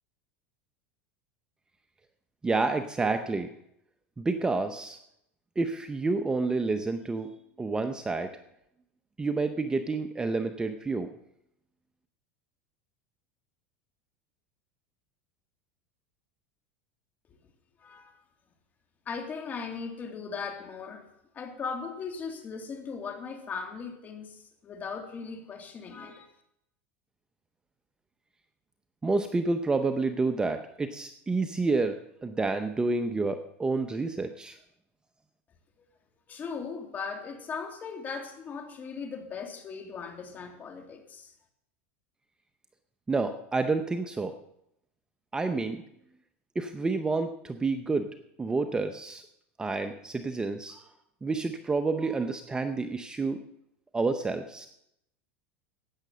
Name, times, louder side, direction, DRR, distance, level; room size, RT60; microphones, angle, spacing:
voice 1, 2.4-3.5 4.2-5.0 5.6-7.3 7.6-8.3 9.2-11.1 29.0-32.0 32.2-34.6 43.1-44.4 45.3-45.8 46.5-48.1 48.4-49.3 49.6-50.9 51.2-53.4 53.9-54.7, right 3 dB, 10° right, 8 dB, 0.8 m, -29 dB
voice 2, 17.8-18.2 19.1-21.1 21.3-26.3 35.8-35.9 36.3-41.3, left 5 dB, 30° left, 5 dB, 2.6 m, -38 dB
15.5 x 9.6 x 6.8 m, 0.79 s
supercardioid pair, 130°, 6 cm